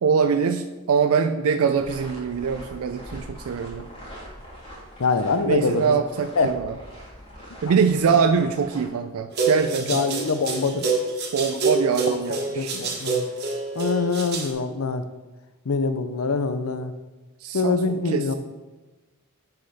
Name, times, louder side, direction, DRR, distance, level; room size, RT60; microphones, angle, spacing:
voice 1, 0.0-3.9 5.4-6.7 7.6-10.0 11.3-13.0 17.4-18.2, right 6 dB, 90° right, 7 dB, 0.4 m, -23 dB
sound 1, 1.8-8.9, equal, 25° left, 2.6 m, -42 dB
voice 2, 5.0-6.0 6.4-6.5 7.7-7.8 9.9-10.9 12.1-13.3 13.8-15.0 15.7-16.9 17.5-18.3, left 4 dB, 80° left, 10 dB, 0.6 m, -24 dB
sound 2, 9.3-14.5, right 3 dB, 50° right, 1.4 m, -27 dB
7.2 x 6.4 x 4.2 m, 1.2 s
head